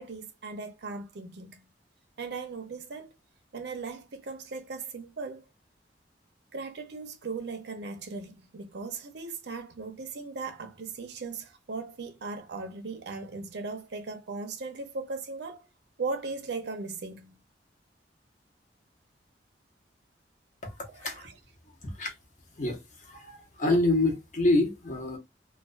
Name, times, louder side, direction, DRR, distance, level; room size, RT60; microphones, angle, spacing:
voice 1, 0.0-1.7 2.2-3.1 3.5-5.4 6.5-15.7 16.0-17.4 20.9-21.3, right 4 dB, 70° right, 0.5 m, -38 dB
voice 2, 20.6-21.2 21.8-22.1 22.6-22.8 23.0-25.2, left 2 dB, 45° left, 0.7 m, -27 dB
2.3 x 2.2 x 2.4 m
head